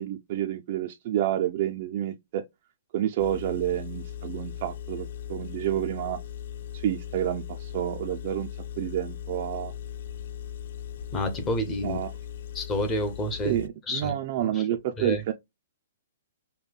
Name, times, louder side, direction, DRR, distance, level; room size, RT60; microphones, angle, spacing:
voice 1, 0.0-2.4 2.9-6.2 6.7-8.5 8.8-9.7 11.8-12.1 13.4-15.3, right 12 dB, 35° right, 0.4 m, -29 dB
Engine, 3.2-13.7, left 9 dB, 45° left, 0.3 m, -38 dB
voice 2, 11.1-12.0 12.5-13.6 13.9-14.7 15.0-15.2, left 1 dB, 15° left, 0.7 m, -29 dB
5.3 x 2.1 x 2.2 m
hypercardioid pair, 170°, 0 cm